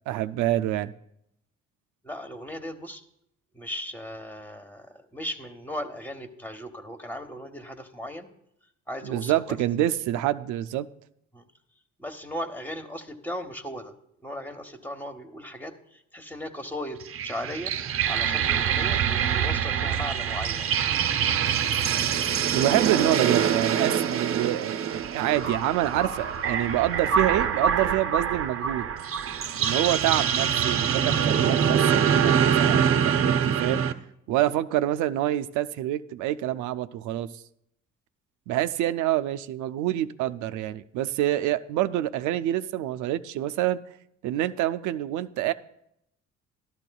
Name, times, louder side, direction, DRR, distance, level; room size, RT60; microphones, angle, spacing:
voice 1, 0.1-0.9 9.0-10.9 22.5-28.9 29.6-33.8 34.3-37.4 38.5-43.8 44.2-45.5, right 13 dB, 85° right, 11 dB, 0.5 m, -27 dB
voice 2, 2.0-3.0 3.5-8.3 8.9-9.6 11.3-11.4 12.0-13.9 14.2-17.7 18.1-20.7, equal, 5° left, 4 dB, 1.0 m, -37 dB
sound 1, 17.0-33.9, right 8 dB, 50° right, 0.6 m, -25 dB
12.0 x 12.0 x 2.3 m, 0.78 s
cardioid pair, 85°, 29 cm